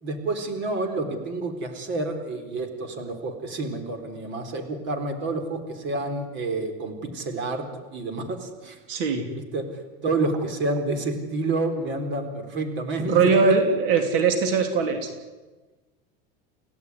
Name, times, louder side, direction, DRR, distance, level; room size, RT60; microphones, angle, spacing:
voice 1, 0.0-7.7 7.9-8.8 9.4-13.4, right 2 dB, 40° right, 6 dB, 4.1 m, -29 dB
voice 2, 8.9-9.3 13.1-15.1, right 5 dB, 70° right, 6 dB, 3.5 m, -21 dB
29.0 x 17.0 x 9.8 m, 1.2 s
supercardioid pair, 150°, 29 cm